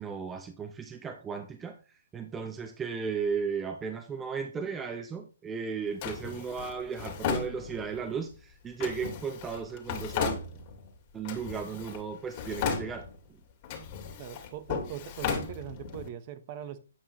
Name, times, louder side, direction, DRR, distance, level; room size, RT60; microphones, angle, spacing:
voice 1, 0.0-1.8 2.1-10.4 11.1-13.1, right 6 dB, 15° right, 0.6 m, -35 dB
Drawer open or close, 6.0-8.1 8.8-10.9 11.2-12.0 12.3-13.3 13.6-16.1, left 6 dB, 35° left, 2.0 m, -35 dB
voice 2, 14.2-16.8, right 10 dB, 35° right, 0.9 m, -41 dB
8.8 x 5.5 x 3.0 m
hypercardioid pair, 145°, 0 cm